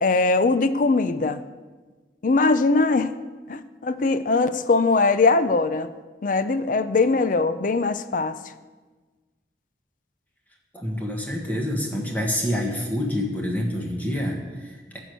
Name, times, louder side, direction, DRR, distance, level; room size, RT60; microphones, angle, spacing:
voice 1, 0.0-1.4 2.2-3.1 3.5-5.9 6.2-8.4, left 3 dB, 50° left, 12 dB, 0.5 m, -21 dB
voice 2, 10.7-15.0, left 1 dB, 10° left, -1 dB, 1.4 m, -27 dB
13.5 x 4.6 x 8.0 m, 1.3 s
head